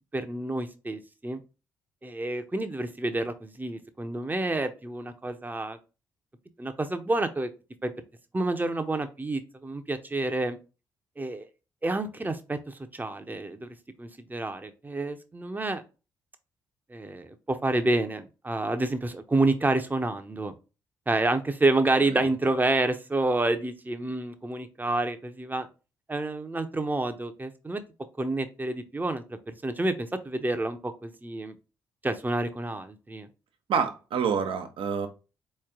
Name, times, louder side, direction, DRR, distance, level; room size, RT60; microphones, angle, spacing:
voice 1, 0.1-1.4 2.0-5.8 6.6-7.5 7.8-7.9 8.3-10.6 11.2-11.5 11.8-13.7 14.0-15.8 16.9-20.5 21.1-25.7 26.1-27.8 28.2-31.6 32.0-33.3, right 2 dB, 20° right, 0.8 m, -29 dB
voice 2, 33.7-35.1, right 6 dB, 60° right, 0.9 m, -27 dB
4.2 x 3.2 x 3.7 m
hypercardioid pair, 40°, 10 cm